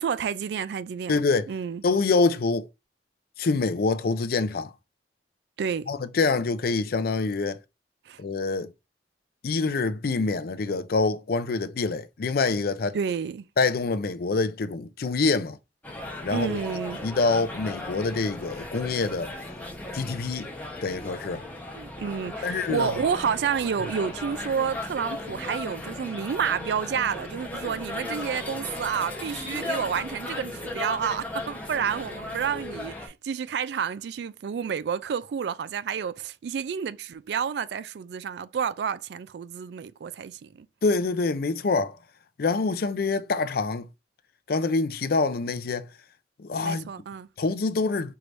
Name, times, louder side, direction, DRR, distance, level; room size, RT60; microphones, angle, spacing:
voice 1, 0.0-1.2 1.5-1.8 5.6-5.9 8.1-8.2 12.9-13.4 16.3-17.0 21.8-40.7 46.6-47.3, right 7 dB, 65° right, 0.3 m, -30 dB
voice 2, 1.1-1.5 1.8-2.7 3.4-4.7 5.9-7.6 8.2-8.7 9.4-13.0 13.6-15.6 16.2-16.6 17.0-19.3 19.9-20.5 20.8-21.4 22.4-22.9 40.8-42.0 42.4-43.9 44.5-45.9 46.4-46.9 47.4-48.2, left 3 dB, 55° left, 0.4 m, -25 dB
sound 1, 15.8-33.1, left 2 dB, 10° left, 0.9 m, -36 dB
4.6 x 3.2 x 2.6 m
head